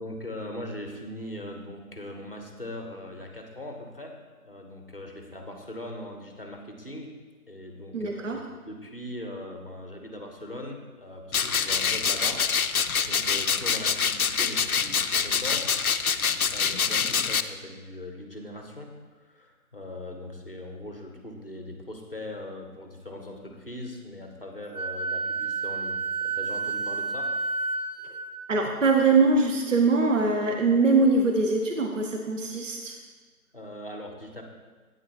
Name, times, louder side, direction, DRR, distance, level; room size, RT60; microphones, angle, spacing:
voice 1, 0.0-4.2 4.4-7.2 7.5-12.4 13.1-15.7 16.5-27.3 33.5-34.4, left 1 dB, 40° left, 3 dB, 0.9 m, -40 dB
voice 2, 7.9-8.4 28.5-33.0, right 3 dB, 55° right, 2 dB, 0.7 m, -22 dB
sound 1, 11.3-17.4, left 6 dB, 70° left, 0.5 m, -25 dB
Wind instrument woodwind instrument, 24.7-28.3, right 3 dB, 80° right, 1.3 m, -30 dB
9.1 x 8.6 x 2.9 m, 1.4 s
figure-of-eight pair, 175°, 45 cm